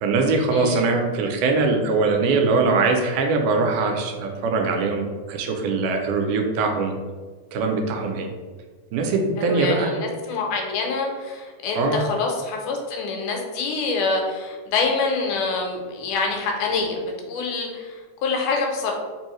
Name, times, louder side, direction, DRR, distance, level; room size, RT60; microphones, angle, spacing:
voice 1, 0.0-6.9 7.5-8.3 8.9-10.0 11.8-12.0, right 3 dB, 90° right, 3 dB, 2.1 m, -22 dB
voice 2, 0.5-0.8 9.4-18.9, left 4 dB, 85° left, 2 dB, 2.2 m, -26 dB
4.9 x 2.7 x 3.0 m, 1.5 s
omnidirectional pair, 3.6 m